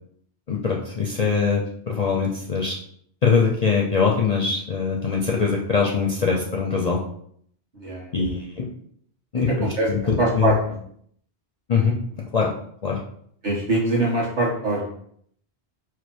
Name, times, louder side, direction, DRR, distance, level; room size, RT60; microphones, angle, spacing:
voice 1, 0.5-2.8 3.2-7.0 8.1-8.7 9.3-10.6 11.7-12.0 12.3-12.5 12.8-13.0, left 5 dB, 45° left, -1 dB, 0.5 m, -22 dB
voice 2, 7.8-8.1 9.4-9.9 10.2-10.7 13.4-14.9, right 2 dB, 45° right, -4 dB, 1.4 m, -23 dB
4.9 x 2.1 x 4.3 m, 0.64 s
omnidirectional pair, 1.1 m